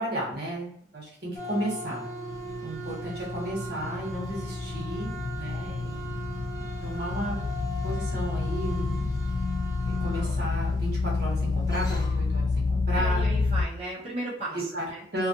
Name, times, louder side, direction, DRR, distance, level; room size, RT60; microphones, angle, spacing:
voice 1, 0.0-2.0 2.6-6.1 6.8-7.4 7.8-9.1 9.8-13.3 14.5-14.9 15.1-15.3, right 1 dB, 55° right, -3 dB, 0.9 m, -33 dB
sound 1, 1.4-12.3, equal, 20° left, 0.5 m, -38 dB
sound 2, 2.3-13.7, left 3 dB, 85° left, 0.3 m, -29 dB
voice 2, 12.9-15.0, right 2 dB, 35° right, -9 dB, 0.8 m, -35 dB
2.6 x 2.4 x 2.6 m, 0.72 s
head